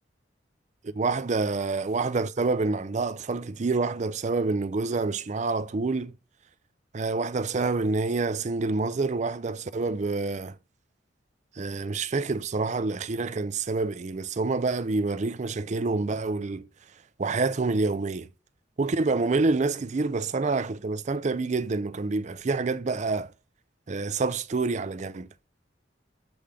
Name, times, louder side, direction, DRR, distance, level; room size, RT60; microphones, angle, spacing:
voice 1, 0.8-6.1 6.9-10.6 11.6-16.6 17.2-18.3 18.8-23.3 23.9-25.3, right 3 dB, 40° right, 0.5 m, -27 dB
7.0 x 3.6 x 4.9 m
head